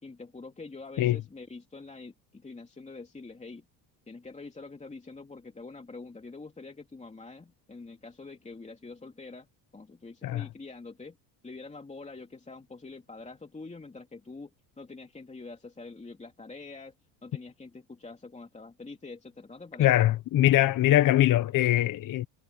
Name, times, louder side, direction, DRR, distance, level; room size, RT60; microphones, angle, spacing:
voice 1, 0.0-3.6 4.1-9.5 9.7-11.2 11.4-16.9 17.2-20.0, left 3 dB, 15° left, 2.8 m, -45 dB
voice 2, 19.8-22.3, left 13 dB, 50° left, 1.1 m, -22 dB
supercardioid pair, 100°, 43 cm